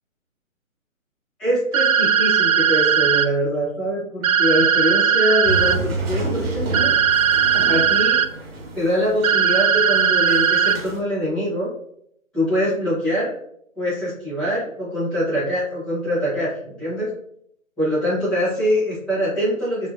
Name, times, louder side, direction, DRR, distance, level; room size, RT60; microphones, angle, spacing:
voice 1, 1.4-6.9 7.6-8.2 8.7-11.7 12.3-13.4 13.8-17.1 17.8-19.9, equal, ahead, -13 dB, 0.6 m, -23 dB
sound 1, 1.7-3.3 4.2-5.8 6.7-8.3 9.2-10.8, right 8 dB, 85° right, 0.5 m, -18 dB
sound 2, 5.4-11.0, right 2 dB, 45° right, 1.1 m, -30 dB
4.4 x 3.1 x 2.6 m, 0.69 s
figure-of-eight pair, 150°, 41 cm